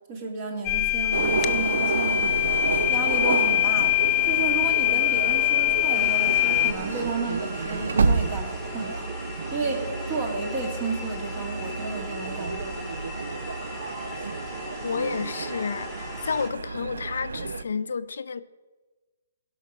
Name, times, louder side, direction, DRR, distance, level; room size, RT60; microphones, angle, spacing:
voice 1, 0.1-2.4 2.9-9.1 9.5-12.9, right 3 dB, 30° right, 2.0 m, -32 dB
sound 1, 0.6-6.7, left 16 dB, 20° left, 0.5 m, -23 dB
sound 2, 1.1-17.6, right 4 dB, 75° right, 0.6 m, -30 dB
sound 3, 5.9-16.5, left 1 dB, 5° right, 1.9 m, -39 dB
voice 2, 14.8-18.4, left 5 dB, 75° left, 0.6 m, -30 dB
16.5 x 5.8 x 6.1 m
hypercardioid pair, 160°, 0 cm